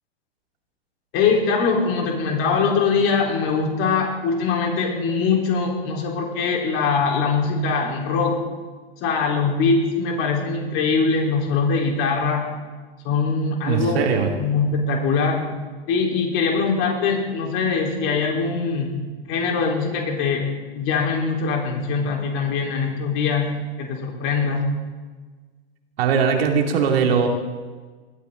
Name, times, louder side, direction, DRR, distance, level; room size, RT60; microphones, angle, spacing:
voice 1, 1.1-8.4 9.0-12.5 13.0-14.0 14.4-15.5 15.9-19.0 19.3-20.4 20.7-23.5 23.8-24.6, left 5 dB, 40° left, 0 dB, 4.1 m, -22 dB
voice 2, 13.6-14.3 26.0-27.3, right 6 dB, 65° right, 3 dB, 2.7 m, -20 dB
20.0 x 13.5 x 3.9 m, 1.4 s
hypercardioid pair, 115°, 32 cm